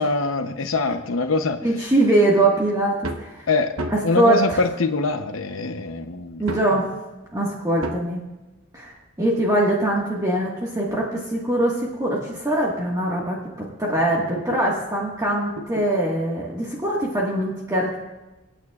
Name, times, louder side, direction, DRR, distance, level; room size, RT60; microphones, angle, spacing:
voice 1, 0.0-1.6 3.5-3.7 4.0-6.4, left 3 dB, 80° left, 7 dB, 0.8 m, -23 dB
voice 2, 1.6-3.5 3.9-4.6 6.4-6.9 7.3-8.2 8.7-13.4 13.8-18.0, right 1 dB, 15° right, -4 dB, 1.6 m, -22 dB
sound 1, 3.0-3.3 3.8-4.2 5.2-5.3 6.5-6.8 7.8-8.1 9.5-11.1 11.8-11.9 12.5-12.6 12.9-13.0 13.4-14.7 15.6-15.9 17.2-17.3, right 2 dB, 85° right, 1.0 m, -34 dB
24.5 x 9.1 x 2.4 m, 1.1 s
head